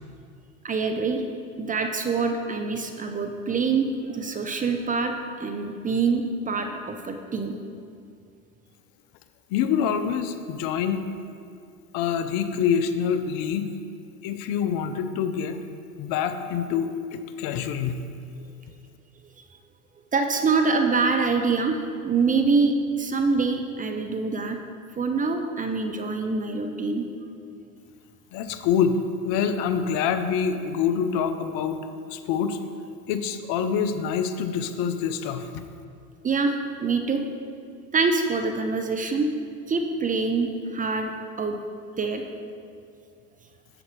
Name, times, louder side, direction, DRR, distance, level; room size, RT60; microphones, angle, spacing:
voice 1, 0.6-1.2 1.6-5.1 5.4-7.5 18.4-18.5 20.1-21.8 22.0-24.6 25.0-27.1 36.2-37.2 37.9-39.3 39.7-41.1 41.4-41.6 42.0-42.2, right 4 dB, 20° right, 5 dB, 0.6 m, -25 dB
voice 2, 9.5-11.0 11.9-13.7 14.2-15.6 16.0-18.0 28.3-29.0 29.2-31.8 32.1-32.6 33.1-35.6, left 7 dB, 55° left, 9 dB, 0.7 m, -26 dB
10.0 x 7.1 x 3.2 m, 2.3 s
hypercardioid pair, 90°, 44 cm